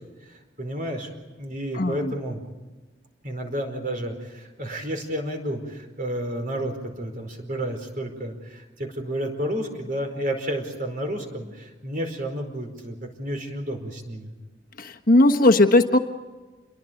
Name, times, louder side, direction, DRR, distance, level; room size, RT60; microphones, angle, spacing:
voice 1, 0.2-1.1 1.4-2.4 3.2-14.3, right 1 dB, 45° right, 4 dB, 4.7 m, -31 dB
voice 2, 14.8-16.0, left 2 dB, 50° left, 5 dB, 1.3 m, -17 dB
29.0 x 22.5 x 5.2 m, 1.2 s
head